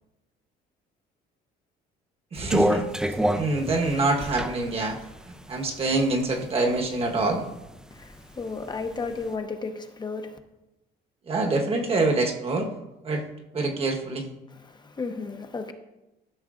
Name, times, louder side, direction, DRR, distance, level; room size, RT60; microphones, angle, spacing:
voice 1, 2.3-2.8 3.3-5.0 5.3-7.4 11.3-12.7 13.0-13.2 13.5-14.3, right 2 dB, 35° right, 1.3 m, -25 dB
sound 1, 2.4-6.3 6.8-7.8 8.1-9.1, equal, 5° right, 0.5 m, -27 dB
voice 2, 7.9-10.4 14.6-15.7, left 4 dB, 25° left, 0.8 m, -34 dB
13.0 x 6.4 x 2.5 m
cardioid pair, 110°, 17 cm